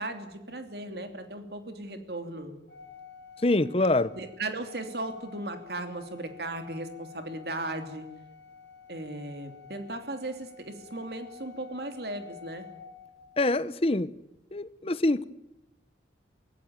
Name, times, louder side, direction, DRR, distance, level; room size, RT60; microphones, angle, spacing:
voice 1, 0.0-2.5 4.1-8.1 8.9-12.7, right 2 dB, 55° right, 2.9 m, -37 dB
Organ, 2.7-13.5, left 6 dB, 65° left, 5.1 m, -50 dB
voice 2, 3.4-4.1 13.4-14.1 14.5-15.3, left 2 dB, 30° left, 0.8 m, -25 dB
24.5 x 16.5 x 9.3 m
head